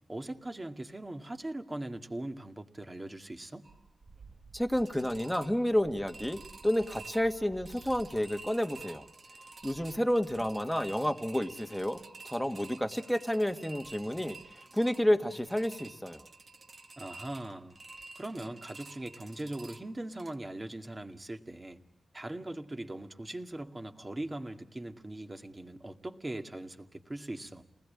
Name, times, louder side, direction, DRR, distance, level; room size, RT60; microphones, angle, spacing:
voice 1, 0.1-3.6 17.0-17.8 18.2-21.8 22.1-27.6, right 1 dB, 25° right, 2.1 m, -40 dB
sound 1, 3.6-20.3, right 3 dB, 45° right, 1.6 m, -51 dB
voice 2, 4.5-9.0 9.6-14.4 14.7-16.2, equal, 5° left, 1.8 m, -30 dB
30.0 x 20.0 x 8.6 m
cardioid pair, 80°, 0 cm